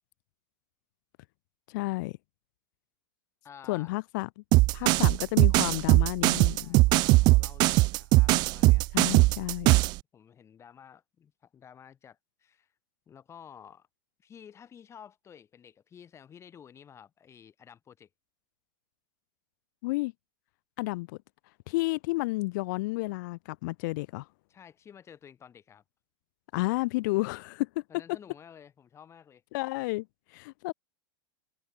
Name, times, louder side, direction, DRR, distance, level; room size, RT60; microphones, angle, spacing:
voice 1, 1.7-2.2 3.7-4.4 4.7-6.8 8.9-9.7 19.8-20.1 20.8-21.2 21.7-24.3 26.5-27.8 29.5-30.1 30.3-30.7, left 22 dB, 60° left, 2.2 m, -31 dB
voice 2, 3.4-3.9 4.8-5.0 6.5-8.8 9.1-9.3 10.1-12.7 13.1-13.9 14.2-18.1 24.5-25.8 27.9-29.4, left 8 dB, 25° left, 5.2 m, -52 dB
sound 1, 4.5-10.0, right 22 dB, 40° right, 0.4 m, -20 dB
hypercardioid pair, 125°, 11 cm